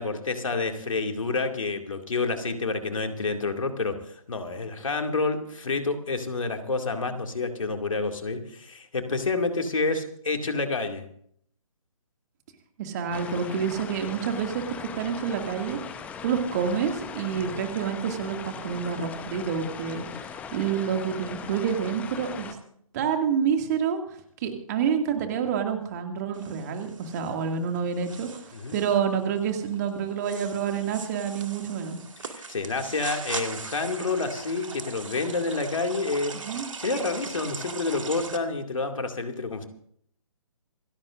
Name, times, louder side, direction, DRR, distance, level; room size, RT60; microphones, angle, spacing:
voice 1, 0.0-4.0 4.3-11.1 17.3-17.5 28.5-28.8 32.2-39.7, left 3 dB, 65° left, 4 dB, 2.4 m, -29 dB
voice 2, 12.8-14.6 14.9-15.8 16.2-20.0 20.5-22.6 22.9-24.0 24.4-28.4 28.7-32.0 36.5-36.7, right 7 dB, 30° right, 4 dB, 2.3 m, -28 dB
sound 1, 13.1-22.5, left 6 dB, 10° left, 0.8 m, -39 dB
sound 2, 26.3-38.4, right 4 dB, 60° right, 2.1 m, -40 dB
27.5 x 14.0 x 2.6 m, 0.65 s
figure-of-eight pair, 140°, 18 cm